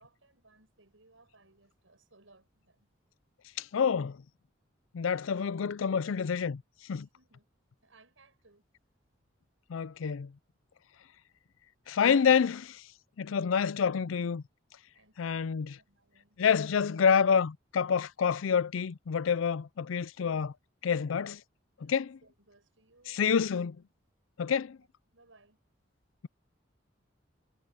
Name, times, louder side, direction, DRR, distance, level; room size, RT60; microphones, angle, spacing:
voice 1, 0.0-2.9 7.0-7.5 7.8-8.6 14.9-16.4 21.8-23.5 24.8-24.9 25.1-25.6, right 2 dB, 80° right, 6.2 m, -64 dB
voice 2, 3.6-4.2 4.9-6.6 6.9-7.1 9.7-10.3 11.9-12.8 13.2-14.4 15.2-15.7 16.4-20.5 20.8-21.4 21.9-22.2 23.1-23.8 24.4-24.8, left 6 dB, 90° left, 0.5 m, -28 dB
head